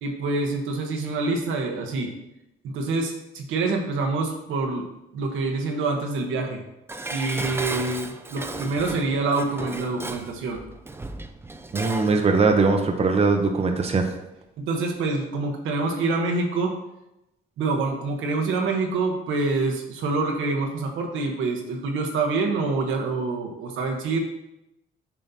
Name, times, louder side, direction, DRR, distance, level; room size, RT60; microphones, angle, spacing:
voice 1, 0.0-2.1 2.6-4.9 5.1-6.6 7.1-10.6 14.6-16.7 17.6-24.2, right 3 dB, 85° right, 2 dB, 1.1 m, -26 dB
Dishes pots and pans, 6.9-12.2 12.5-12.6, right 2 dB, 10° right, 0.4 m, -35 dB
voice 2, 11.7-14.1, right 4 dB, 30° right, 4 dB, 0.8 m, -21 dB
7.2 x 5.6 x 2.8 m, 0.90 s
cardioid pair, 90°, 20 cm